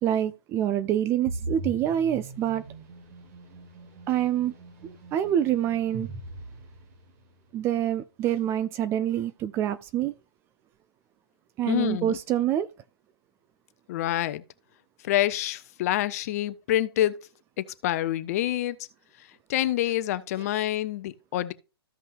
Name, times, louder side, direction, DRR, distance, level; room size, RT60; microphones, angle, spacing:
voice 1, 0.0-2.6 4.1-4.5 4.8-6.1 7.5-10.1 11.6-12.7, right 11 dB, 20° right, 0.4 m, -26 dB
sound 1, 1.3-7.2, right 2 dB, 40° right, 2.5 m, -40 dB
voice 2, 11.7-12.2 13.9-14.4 15.0-17.2 17.6-18.8 19.5-21.5, left 13 dB, 40° left, 0.8 m, -27 dB
14.5 x 5.5 x 2.4 m
figure-of-eight pair, 125°, 13 cm